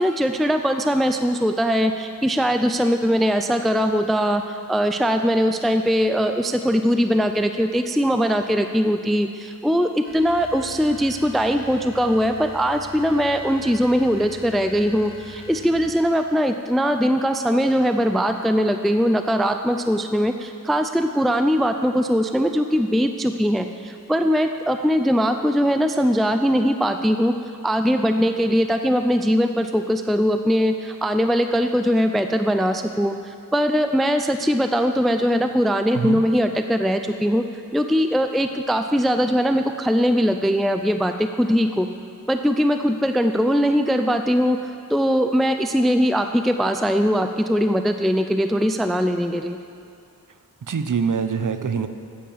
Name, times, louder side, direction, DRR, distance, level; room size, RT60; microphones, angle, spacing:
voice 1, 0.0-27.3 27.6-37.4 37.7-41.9 42.3-49.6, equal, ahead, 7 dB, 0.5 m, -21 dB
sound 1, 10.0-16.2, left 1 dB, 35° right, 1.7 m, -43 dB
voice 2, 50.7-51.9, right 6 dB, 60° right, 9 dB, 0.9 m, -24 dB
13.5 x 8.7 x 7.3 m, 2.4 s
wide cardioid pair, 85°, 36 cm